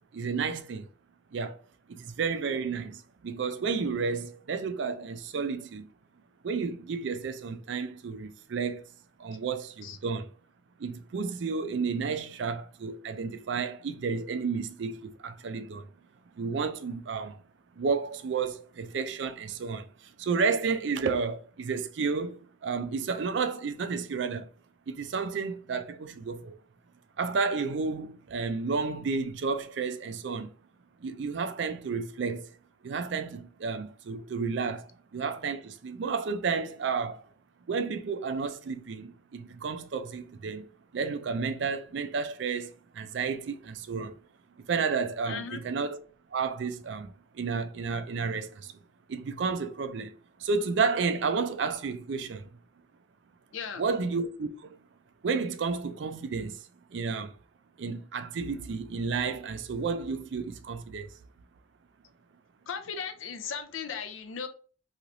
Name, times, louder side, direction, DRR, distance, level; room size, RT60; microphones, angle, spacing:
voice 1, 0.1-0.9 1.3-1.6 1.9-5.9 6.4-8.8 9.2-10.3 10.8-15.8 16.4-17.4 17.8-24.5 24.9-26.6 27.2-30.5 31.0-32.5 32.8-37.2 37.7-40.7 40.9-44.2 44.7-46.0 46.3-48.7 49.1-50.1 50.4-52.5 53.8-54.8 55.2-57.3 57.8-61.1, right 5 dB, 65° right, 0.4 m, -31 dB
voice 2, 45.3-45.6 53.5-53.8 62.7-64.5, left 6 dB, 75° left, 0.5 m, -37 dB
3.2 x 2.8 x 2.5 m
head